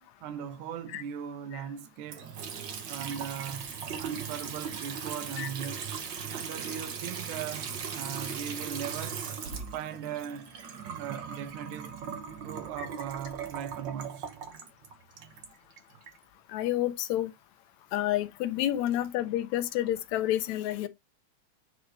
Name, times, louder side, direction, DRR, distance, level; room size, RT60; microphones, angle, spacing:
voice 1, 0.2-2.3 2.8-5.9 6.3-9.2 9.7-10.5 10.9-12.0 12.4-14.3, right 9 dB, 85° right, 2.2 m, -39 dB
Water tap faucet / Sink (filling or washing) / Trickle dribble, 2.1-16.2, right 7 dB, 55° right, 1.4 m, -38 dB
voice 2, 16.5-17.3 17.9-20.9, left 13 dB, 75° left, 1.9 m, -29 dB
9.6 x 3.9 x 3.2 m
omnidirectional pair, 3.5 m